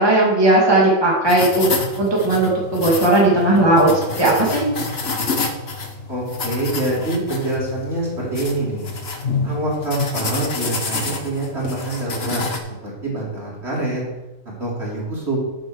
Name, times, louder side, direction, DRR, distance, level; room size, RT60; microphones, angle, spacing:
voice 1, 0.0-1.7 2.0-4.6, right 2 dB, 20° right, -5 dB, 2.6 m, -16 dB
sound 1, 1.2-12.6, left 3 dB, 50° left, 1.4 m, -28 dB
voice 2, 6.1-8.9 9.4-12.4 12.8-14.0 14.6-15.4, right 2 dB, 50° right, -5 dB, 3.8 m, -25 dB
8.9 x 7.6 x 6.5 m, 1.1 s
omnidirectional pair, 1.4 m